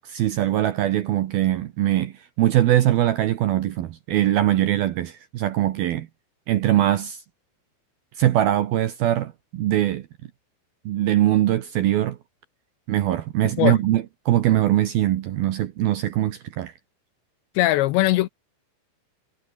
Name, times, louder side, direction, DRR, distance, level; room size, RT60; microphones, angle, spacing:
voice 1, 0.0-6.1 6.5-7.2 8.2-10.1 10.9-12.2 12.9-16.7, right 13 dB, 70° right, 2.3 m, -22 dB
voice 2, 17.6-18.3, left 16 dB, 80° left, 2.7 m, -20 dB
omnidirectional pair, 5.7 m